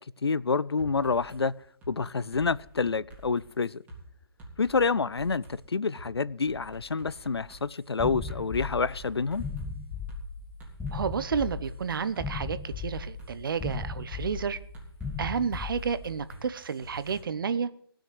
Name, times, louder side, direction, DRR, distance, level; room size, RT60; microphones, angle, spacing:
voice 1, 0.2-1.5 1.9-3.8 4.6-9.5, left 4 dB, 90° left, 0.5 m, -28 dB
sound 1, 0.8-1.4 1.8-1.9 2.3-4.0 4.4-5.6 5.9-6.1 6.5-9.7 10.1-10.2 10.6-12.3 12.7-13.8 14.2-14.4 14.7-17.2, right 1 dB, 10° right, 3.9 m, -48 dB
sound 2, 8.0-16.3, left 4 dB, 10° left, 2.0 m, -37 dB
voice 2, 10.9-14.6 15.2-17.7, right 6 dB, 60° right, 1.0 m, -31 dB
18.0 x 6.4 x 7.8 m
figure-of-eight pair, 145°, 13 cm